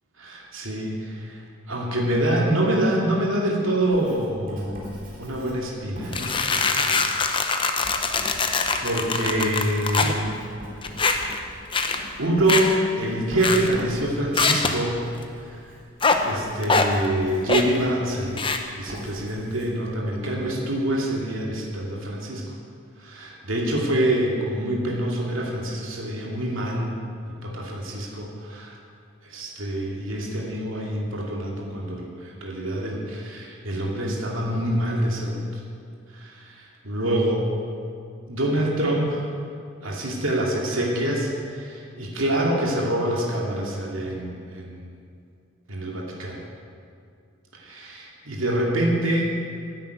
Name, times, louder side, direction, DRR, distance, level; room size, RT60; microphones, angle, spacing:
voice 1, 0.2-1.4 1.7-4.8 5.2-7.0 7.6-8.0 8.8-10.3 12.2-15.0 15.5-15.6 16.2-18.5 18.8-22.4 23.0-26.9 27.4-28.8 29.2-35.6 36.1-37.5 38.3-39.3 39.8-44.9 45.7-46.4 47.5-49.2, right 1 dB, 80° right, -2 dB, 2.5 m, -26 dB
Writing, 3.9-20.5, equal, 40° right, 3.6 m, -43 dB
sound 1, 6.1-10.2 10.8-11.4 11.7-12.0 12.5-12.8 13.4-13.8 14.3-14.8 16.0-16.2 16.6-16.9 17.5-17.8 18.4-18.6, left 4 dB, 25° left, 0.9 m, -23 dB
13.0 x 9.9 x 9.2 m, 2.4 s
head